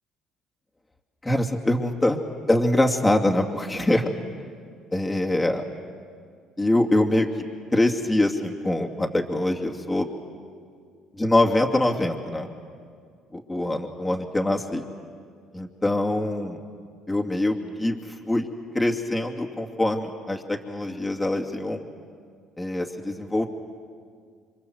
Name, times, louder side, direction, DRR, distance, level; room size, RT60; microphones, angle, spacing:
voice 1, 1.2-2.2 2.5-4.1 4.9-5.6 6.6-7.3 7.7-10.1 11.2-12.5 13.3-14.8 15.5-16.6 17.1-18.5 18.7-21.8 22.6-23.5, left 1 dB, 15° left, 1 dB, 2.5 m, -24 dB
28.0 x 24.5 x 8.0 m, 2.1 s
supercardioid pair, 75°, 0 cm